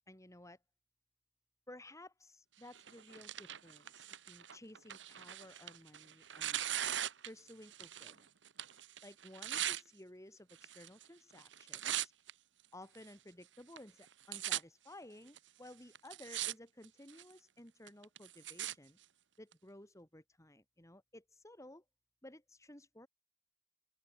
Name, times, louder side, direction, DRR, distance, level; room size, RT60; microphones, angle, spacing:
voice 1, 0.1-0.6 1.7-6.6 7.2-8.3 9.0-12.1 12.7-19.0 19.4-21.8 22.2-23.1, left 1 dB, 15° left, 4.3 m, -55 dB
Tearing, 2.7-8.2 8.5-9.8 10.6-11.1 11.4-12.3 13.0-13.1 13.8-13.9 14.0-14.6 15.4-15.5 16.0-16.5 16.8-17.3 17.9-18.7 19.5-19.6, right 11 dB, 75° right, 1.5 m, -40 dB
open air
head